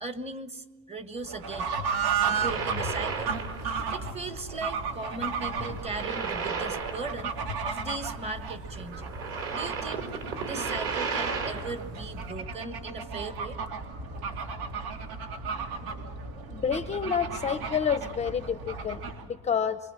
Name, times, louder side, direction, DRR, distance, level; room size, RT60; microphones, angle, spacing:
voice 1, 0.0-1.7 2.2-3.3 3.9-7.3 7.6-9.1 9.5-10.1 10.4-13.6, right 3 dB, 20° right, 9 dB, 1.4 m, -38 dB
Fowl / Bird, 1.2-19.3, right 5 dB, 85° right, 3.7 m, -34 dB
sound 1, 2.2-3.8 4.1-4.3 5.6-7.5 7.8-7.9 8.8-11.8, right 5 dB, 50° right, 5.0 m, -34 dB
voice 2, 16.5-19.8, left 7 dB, 20° left, 10 dB, 0.7 m, -29 dB
24.5 x 24.0 x 7.5 m, 1.2 s
cardioid pair, 160°, 31 cm